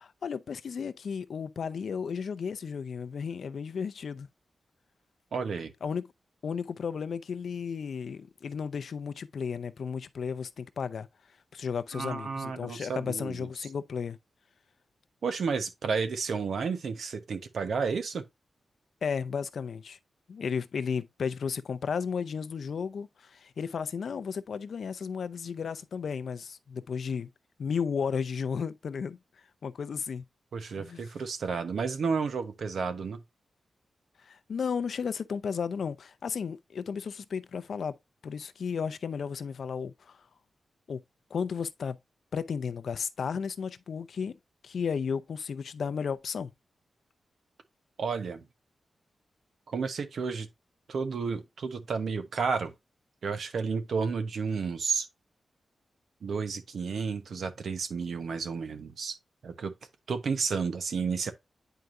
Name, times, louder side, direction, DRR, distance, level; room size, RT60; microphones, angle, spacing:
voice 1, 0.0-4.3 5.8-6.0 6.4-11.1 11.5-14.2 19.0-20.0 20.3-27.3 27.6-29.2 29.6-30.2 30.8-31.0 34.2-38.0 38.2-40.2 40.9-41.0 41.3-42.0 42.3-44.4 44.6-46.5, left 6 dB, 65° left, 0.5 m, -34 dB
voice 2, 5.3-5.7 11.9-13.5 15.2-18.2 30.5-33.2 48.0-48.4 49.7-50.5 50.9-52.7 53.2-55.1 56.2-59.2 59.4-59.7 60.1-61.3, right 5 dB, 70° right, 1.0 m, -31 dB
9.1 x 4.7 x 2.5 m
wide cardioid pair, 160°, 0 cm